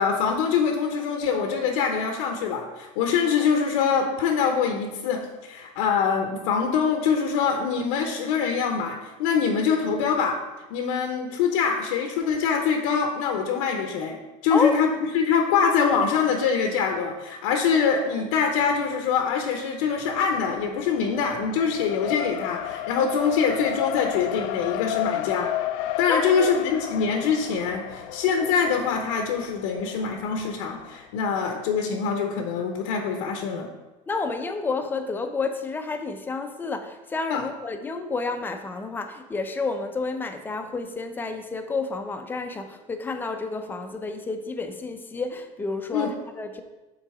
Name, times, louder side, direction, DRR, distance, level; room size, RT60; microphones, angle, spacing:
voice 1, 0.0-10.3 10.7-14.2 14.4-25.5 26.0-33.7 37.3-37.4 45.9-46.1, left 6 dB, 85° left, 3 dB, 0.9 m, -24 dB
voice 2, 14.5-14.8 26.1-26.5 34.1-46.6, left 3 dB, 10° left, 7 dB, 0.5 m, -30 dB
Race car auto racing, 20.0-31.0, left 14 dB, 70° left, 0.4 m, -33 dB
7.4 x 3.9 x 4.8 m, 1.1 s
supercardioid pair, 145°, 16 cm